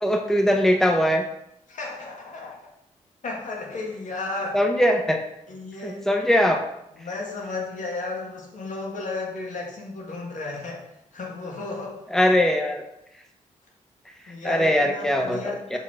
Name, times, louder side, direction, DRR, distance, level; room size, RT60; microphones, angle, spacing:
voice 1, 0.0-1.2 4.5-5.2 5.8-6.6 12.1-12.8 14.4-15.8, equal, 5° left, 4 dB, 0.9 m, -21 dB
voice 2, 1.7-2.7 3.2-4.6 5.5-6.1 6.9-10.9 11.1-12.1 14.3-15.8, left 3 dB, 65° left, 0 dB, 1.9 m, -34 dB
6.8 x 4.6 x 4.9 m, 0.81 s
supercardioid pair, 50°, 14 cm